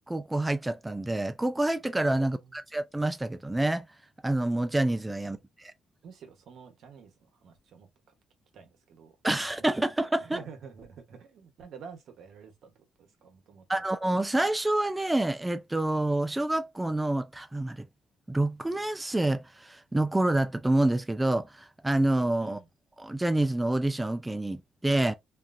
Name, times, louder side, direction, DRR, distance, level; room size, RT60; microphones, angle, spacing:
voice 1, 0.1-3.9 4.2-5.7 9.2-10.4 13.7-17.9 18.3-22.6 23.0-25.1, right 1 dB, 10° right, 0.3 m, -27 dB
voice 2, 2.2-2.6 5.3-5.4 6.0-7.9 8.5-9.1 10.2-13.9 22.4-22.7, right 6 dB, 70° right, 1.0 m, -49 dB
2.9 x 2.4 x 2.5 m
cardioid pair, 90°, 0 cm